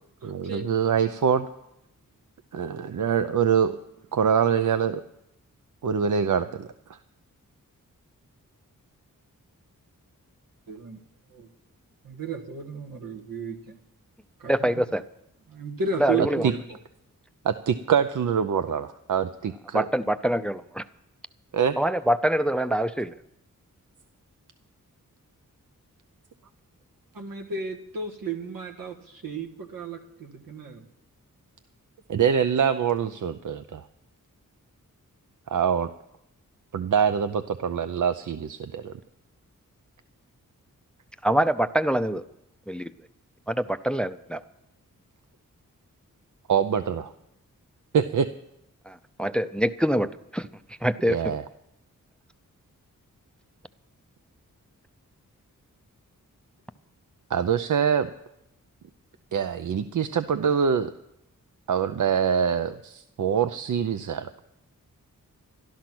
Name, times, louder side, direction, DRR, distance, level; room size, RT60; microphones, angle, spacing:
voice 1, 0.2-1.5 2.5-3.8 4.1-5.0 5.8-6.7 16.4-16.5 17.4-19.8 21.5-21.8 32.1-33.8 35.5-35.9 36.7-38.9 46.5-47.1 47.9-48.3 51.1-51.4 57.3-58.1 59.3-60.9 61.7-64.3, right 7 dB, 65° right, 10 dB, 0.6 m, -24 dB
voice 2, 10.7-11.0 11.3-11.5 12.0-13.6 14.4-14.8 15.5-16.6 27.1-30.8, right 4 dB, 85° right, 1 dB, 1.8 m, -33 dB
voice 3, 14.5-15.0 16.0-16.5 19.7-20.8 21.8-23.1 41.2-42.2 42.7-42.9 43.5-44.4 48.9-50.5 50.8-51.3, right 1 dB, 5° left, 13 dB, 0.5 m, -25 dB
13.0 x 11.5 x 6.1 m, 0.81 s
cardioid pair, 60°, 33 cm